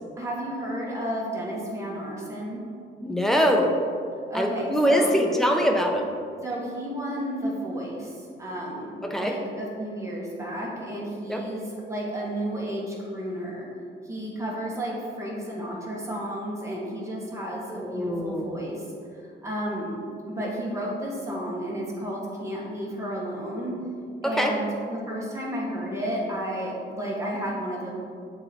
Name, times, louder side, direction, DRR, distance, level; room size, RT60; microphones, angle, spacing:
voice 1, 0.2-2.6 4.3-5.2 6.4-13.7 14.0-18.9 19.2-20.0 20.4-23.7 24.2-27.9, equal, 15° right, -5 dB, 1.6 m, -32 dB
voice 2, 3.0-3.8 4.3-6.1 9.0-9.4 11.3-11.5 17.7-18.6 24.2-24.5, equal, ahead, 2 dB, 0.7 m, -23 dB
7.0 x 3.9 x 4.5 m, 2.3 s
cardioid pair, 110°, 20 cm